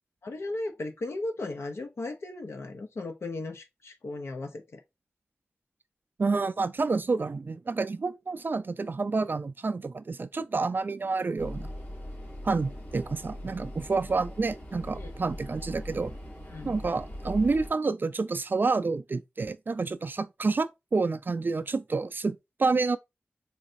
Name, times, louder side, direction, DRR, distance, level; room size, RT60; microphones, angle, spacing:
voice 1, 0.2-4.8 15.0-15.1 16.5-16.8, left 2 dB, 80° left, 0.6 m, -36 dB
voice 2, 6.2-11.7 12.4-16.1 16.6-23.0, right 4 dB, 50° right, 0.3 m, -29 dB
sound 1, 11.4-17.7, equal, 60° left, 2.2 m, -41 dB
4.0 x 3.3 x 2.5 m
wide cardioid pair, 75°, 4 cm